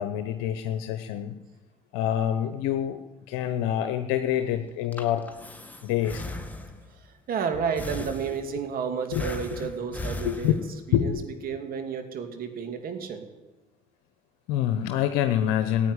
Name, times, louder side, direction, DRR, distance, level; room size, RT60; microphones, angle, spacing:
voice 1, 0.0-1.3 1.9-3.0 3.3-5.3 5.8-6.3 9.1-9.2 10.2-10.5 10.9-11.2 11.5-11.6 14.5-15.9, left 10 dB, 80° left, 8 dB, 0.9 m, -26 dB
Breathing, 4.7-7.0 7.8-8.7 9.1-10.9, left 2 dB, 10° left, 2.1 m, -37 dB
voice 2, 6.9-10.5 10.9-11.1 11.4-13.2, right 6 dB, 60° right, 6 dB, 2.6 m, -31 dB
15.5 x 9.0 x 9.7 m, 1.1 s
hypercardioid pair, 65°, 17 cm